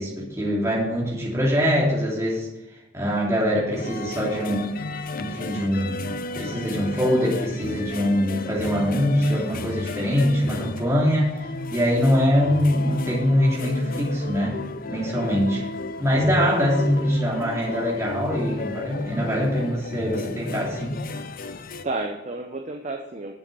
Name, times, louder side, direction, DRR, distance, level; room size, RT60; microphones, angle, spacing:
voice 1, 0.0-2.5 2.9-4.8 5.2-11.4 11.7-15.6 16.0-21.0, equal, 15° right, -5 dB, 3.0 m, -23 dB
sound 1, 3.7-21.8, left 3 dB, 45° left, 0.5 m, -33 dB
voice 2, 16.4-16.7 17.0-17.1 21.8-23.3, right 3 dB, 35° right, 3 dB, 0.7 m, -30 dB
7.6 x 7.2 x 6.9 m, 0.91 s
head